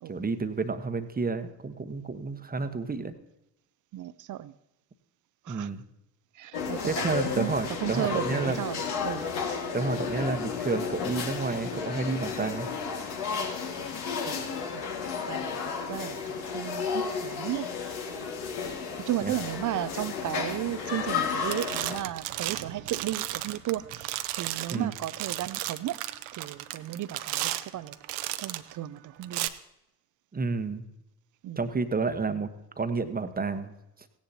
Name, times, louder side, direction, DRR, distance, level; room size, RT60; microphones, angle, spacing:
voice 1, 0.1-3.1 5.5-5.8 6.8-8.6 9.7-12.7 19.2-19.3 24.7-24.9 30.3-30.9 31.6-32.5 32.8-33.7, right 4 dB, 20° right, 1.1 m, -30 dB
voice 2, 3.9-4.5 5.4-5.7 6.3-7.5 7.8-9.3 13.8-13.9 14.2-17.7 19.0-25.9 26.3-28.0 28.4-29.5 31.4-31.6, right 13 dB, 40° right, 0.6 m, -34 dB
sound 1, 6.5-22.0, left 6 dB, 70° left, 2.0 m, -33 dB
sound 2, 21.0-21.2 21.5-28.7 29.2-29.5, right 15 dB, 65° right, 0.9 m, -34 dB
17.0 x 10.5 x 2.8 m
hypercardioid pair, 60°, 50 cm